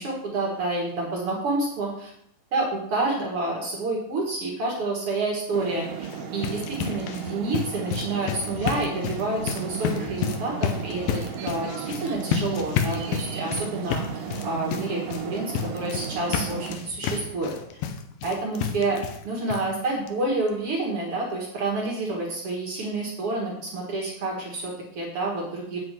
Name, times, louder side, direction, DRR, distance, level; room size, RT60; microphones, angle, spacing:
voice 1, 0.0-2.1 2.5-15.4 15.7-17.5 18.2-19.0 19.2-25.8, right 2 dB, 60° right, -2 dB, 1.5 m, -29 dB
sound 1, 5.5-16.8, right 7 dB, 75° right, 2.6 m, -35 dB
sound 2, 5.9-19.2 19.5-19.6 20.1-20.2 20.5-20.6, left 8 dB, 85° left, 2.1 m, -31 dB
8.2 x 7.6 x 4.7 m, 0.73 s
omnidirectional pair, 5.3 m